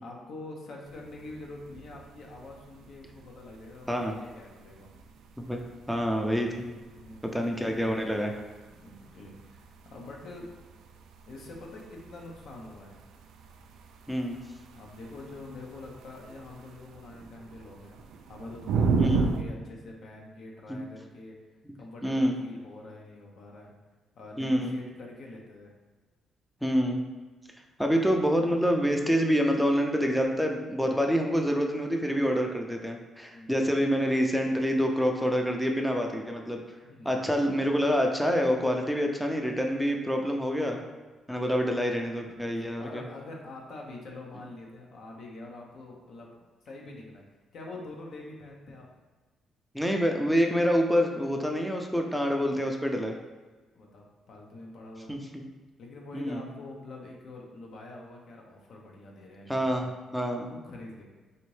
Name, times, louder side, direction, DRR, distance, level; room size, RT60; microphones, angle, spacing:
voice 1, 0.0-4.9 7.0-7.4 8.8-10.5 11.3-13.0 14.7-21.4 21.8-23.7 24.1-25.7 33.3-33.6 36.8-37.3 42.2-42.5 42.8-47.2 47.5-48.9 53.7-55.2 55.8-59.9 60.5-61.0, left 2 dB, 65° left, -1 dB, 0.8 m, -45 dB
sound 1, 0.8-19.4, right 5 dB, 80° right, 0.3 m, -36 dB
voice 2, 5.9-6.6 7.2-8.3 14.1-14.4 19.0-19.2 20.7-20.8 22.0-22.4 24.4-24.8 26.6-27.1 27.8-36.6 37.0-40.8 41.3-43.0 49.7-53.2 55.1-55.2 56.1-56.5 59.5-60.5, equal, ahead, 2 dB, 0.5 m, -27 dB
4.1 x 2.6 x 3.2 m, 1.3 s
cardioid pair, 90°, 0 cm